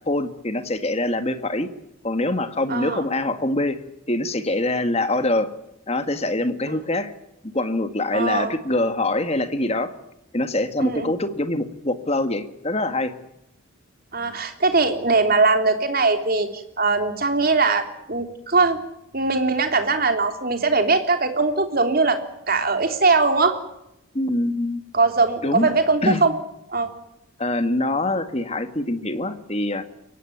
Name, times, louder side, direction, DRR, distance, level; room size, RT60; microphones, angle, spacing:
voice 1, 0.1-1.7 2.0-5.5 5.9-7.1 7.4-9.9 10.3-13.1 24.1-24.8 25.4-25.7 26.0-26.2 27.4-29.9, left 2 dB, 30° left, 9 dB, 1.9 m, -24 dB
voice 2, 2.7-3.0 8.1-8.5 10.8-11.1 14.1-18.8 19.1-22.2 22.5-23.6 24.9-26.3 26.7-26.9, right 3 dB, 45° right, 6 dB, 3.3 m, -21 dB
23.0 x 18.0 x 9.5 m, 0.87 s
head